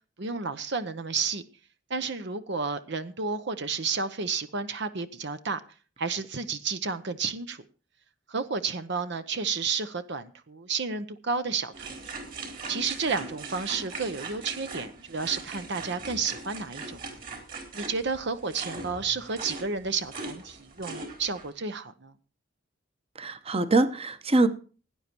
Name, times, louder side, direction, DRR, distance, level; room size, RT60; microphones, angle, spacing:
voice 1, 0.2-1.4 1.9-5.6 6.0-7.6 8.3-12.1 12.7-17.0 17.7-22.1, right 5 dB, 60° right, 0.9 m, -31 dB
sound 1, 11.7-21.5, right 3 dB, 45° right, 4.1 m, -40 dB
voice 2, 23.2-24.5, right 2 dB, 30° right, 1.1 m, -23 dB
17.0 x 9.8 x 4.5 m
head